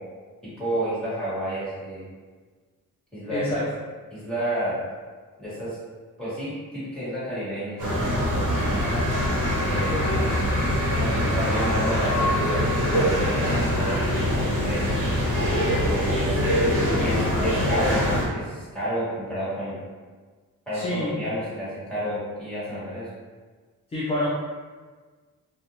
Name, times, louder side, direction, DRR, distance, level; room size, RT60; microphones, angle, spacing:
voice 1, 0.4-2.0 3.1-3.6 4.1-4.8 5.4-5.8 6.2-8.5 9.6-10.3 10.9-15.0 15.8-16.6 16.9-19.8 20.7-23.1, equal, ahead, -12 dB, 1.3 m, -30 dB
voice 2, 3.3-3.6 20.7-21.1 23.9-24.3, left 1 dB, 20° left, -7 dB, 0.3 m, -27 dB
sound 1, 7.8-18.2, equal, 65° right, 0.9 m, -23 dB
2.5 x 2.2 x 2.7 m, 1.5 s
wide cardioid pair, 135°, 34 cm